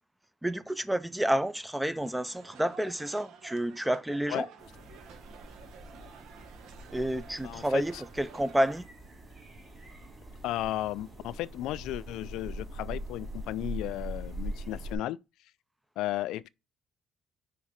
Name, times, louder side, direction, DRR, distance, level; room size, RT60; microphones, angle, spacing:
voice 1, 0.4-4.5 6.9-8.9, right 1 dB, 5° right, 0.5 m, -29 dB
sound 1, 2.0-8.8, right 6 dB, 80° right, 1.0 m, -52 dB
sound 2, 4.6-15.0, right 1 dB, 30° right, 3.5 m, -42 dB
voice 2, 7.4-8.0 10.4-15.2 16.0-16.5, left 15 dB, 85° left, 0.3 m, -34 dB
5.8 x 3.7 x 4.6 m
cardioid pair, 110°, 0 cm